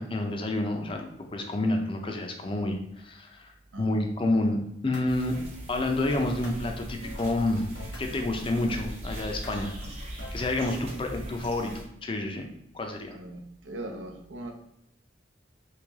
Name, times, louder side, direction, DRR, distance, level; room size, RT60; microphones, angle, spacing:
voice 1, 0.0-3.5 3.8-4.6 4.8-5.4 5.7-7.6 8.0-9.7 10.3-12.5 12.7-13.2, left 2 dB, 30° left, 3 dB, 0.5 m, -29 dB
sound 1, 4.8-5.0 5.3-8.0 8.3-8.8 9.1-10.6, left 1 dB, 65° left, 1.0 m, -45 dB
sound 2, 5.1-11.8, right 1 dB, 35° right, 0.9 m, -40 dB
voice 2, 10.6-11.1 13.1-14.5, right 1 dB, 85° right, 2 dB, 0.7 m, -41 dB
3.2 x 2.9 x 3.5 m, 0.78 s
head